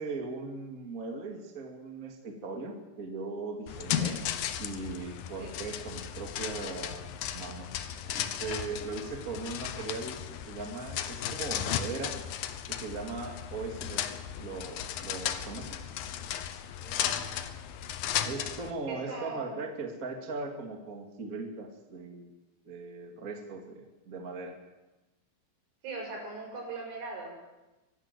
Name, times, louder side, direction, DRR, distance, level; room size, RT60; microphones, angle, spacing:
voice 1, 0.0-4.2 4.6-12.2 12.7-14.1 14.4-15.9 18.2-22.3 22.6-24.6, right 3 dB, 30° right, 3 dB, 1.7 m, -39 dB
sound 1, 3.7-18.7, left 10 dB, 75° left, 2.1 m, -35 dB
voice 2, 16.8-17.2 18.9-19.6 25.8-27.3, right 3 dB, 80° right, 0 dB, 9.2 m, -40 dB
24.0 x 12.5 x 9.3 m, 1.1 s
omnidirectional pair, 5.5 m